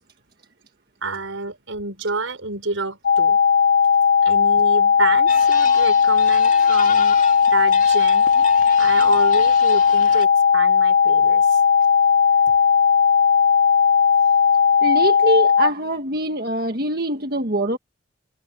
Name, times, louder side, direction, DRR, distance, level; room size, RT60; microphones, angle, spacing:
voice 1, 1.0-3.4 4.2-7.2 7.5-8.3 8.8-11.6, right 3 dB, 75° right, 5.1 m, -29 dB
sound 1, 3.0-15.7, left 6 dB, 60° left, 1.2 m, -16 dB
sound 2, 5.3-10.2, left 4 dB, 40° left, 2.1 m, -31 dB
voice 2, 14.8-17.8, right 1 dB, 50° right, 1.7 m, -23 dB
head